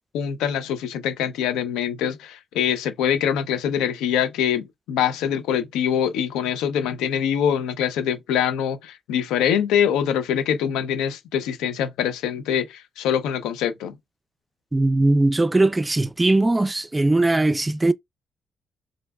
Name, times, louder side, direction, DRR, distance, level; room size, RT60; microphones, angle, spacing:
voice 1, 0.1-14.0, left 9 dB, 90° left, 0.5 m, -24 dB
voice 2, 14.7-17.9, right 2 dB, 20° right, 0.3 m, -19 dB
3.7 x 3.3 x 2.3 m
supercardioid pair, 55°, 0 cm